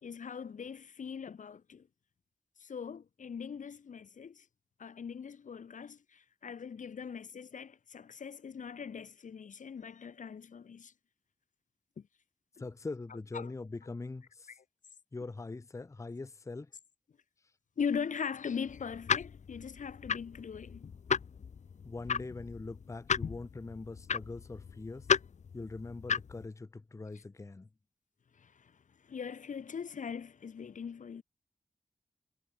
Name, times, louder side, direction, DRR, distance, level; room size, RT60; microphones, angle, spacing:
voice 1, 0.0-1.9 2.6-4.4 4.8-10.9 12.0-12.1 13.3-13.5 17.8-20.9 28.4-28.7 29.0-31.2, left 6 dB, 90° left, 1.7 m, -40 dB
voice 2, 12.6-14.5 15.1-16.7 21.8-25.1 25.5-27.7, left 3 dB, 25° left, 0.6 m, -42 dB
sound 1, 18.7-26.5, left 6 dB, 70° left, 0.9 m, -35 dB
wide cardioid pair, 130°, 13 cm